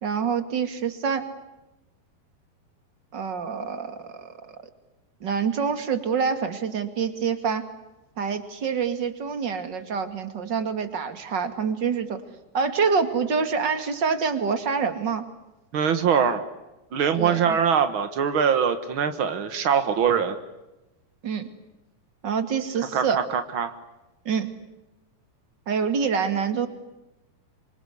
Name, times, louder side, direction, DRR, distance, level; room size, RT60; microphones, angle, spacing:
voice 1, 0.0-1.3 3.1-4.6 5.2-7.7 8.2-12.2 12.5-15.2 17.2-17.6 21.2-21.5 22.2-23.2 24.2-24.5 25.7-26.7, right 6 dB, 35° right, 9 dB, 2.2 m, -26 dB
voice 2, 15.7-16.4 16.9-20.4 22.9-23.7, right 7 dB, 75° right, 9 dB, 1.1 m, -23 dB
27.5 x 25.5 x 8.3 m, 0.99 s
omnidirectional pair, 4.7 m